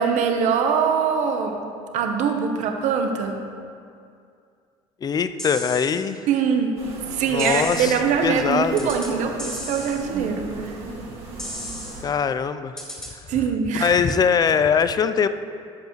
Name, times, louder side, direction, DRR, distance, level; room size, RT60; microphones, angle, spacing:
voice 1, 0.0-1.6 1.9-3.4 6.3-6.8 7.1-10.7 13.3-14.0, right 6 dB, 60° right, 5 dB, 0.9 m, -23 dB
voice 2, 5.0-6.2 7.3-7.9 8.2-8.9 12.0-12.8 13.7-15.3, left 6 dB, 30° left, 12 dB, 0.4 m, -22 dB
sound 1, 5.4-6.0 7.4-8.0 8.8-9.1 9.4-10.0 11.4-12.0 12.8-13.1, equal, 5° left, 1.9 m, -34 dB
sound 2, 6.8-12.0, right 2 dB, 45° right, 2.0 m, -37 dB
12.0 x 5.3 x 3.1 m, 2.3 s
supercardioid pair, 85°, 14 cm